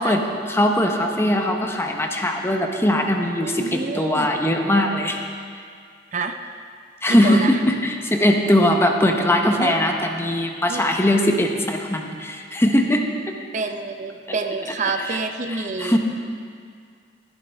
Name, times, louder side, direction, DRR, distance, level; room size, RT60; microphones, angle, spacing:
voice 1, 0.0-5.2 7.0-13.3 14.9-15.2 15.5-16.0, left 1 dB, 15° left, 3 dB, 0.9 m, -20 dB
voice 2, 3.4-4.3 6.1-6.3 7.1-7.6 9.6-9.7 10.7-10.8 13.5-16.0, right 4 dB, 45° right, 6 dB, 0.5 m, -28 dB
14.5 x 12.0 x 3.5 m, 2.1 s
head